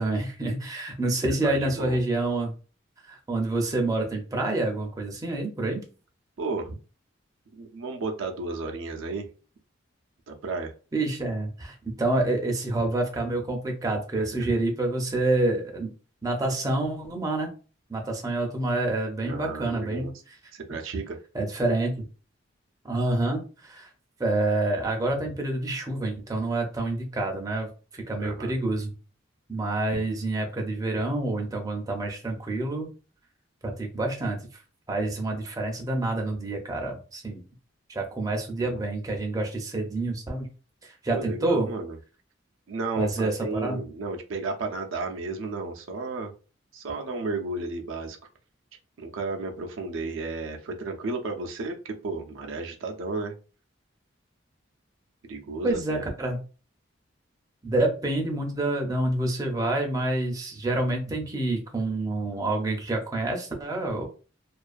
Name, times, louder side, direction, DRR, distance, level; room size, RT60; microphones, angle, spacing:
voice 1, 0.0-2.5 3.0-5.8 10.9-15.9 16.2-17.5 17.9-20.1 21.3-22.1 22.8-23.9 24.2-27.7 27.9-28.9 29.5-32.9 33.6-34.6 34.9-37.4 37.9-40.5 40.8-41.7 43.0-43.8 55.6-56.4 57.6-64.1, right 2 dB, 20° right, 1 dB, 0.4 m, -27 dB
voice 2, 1.1-2.0 6.4-6.7 7.5-9.3 10.3-10.7 14.2-14.5 19.2-20.1 20.5-21.2 28.2-28.5 38.6-38.8 41.1-42.0 42.7-46.3 46.7-48.2 49.0-53.3 55.2-56.0, right 3 dB, 80° right, 3 dB, 0.4 m, -33 dB
2.4 x 2.2 x 2.4 m, 0.35 s
head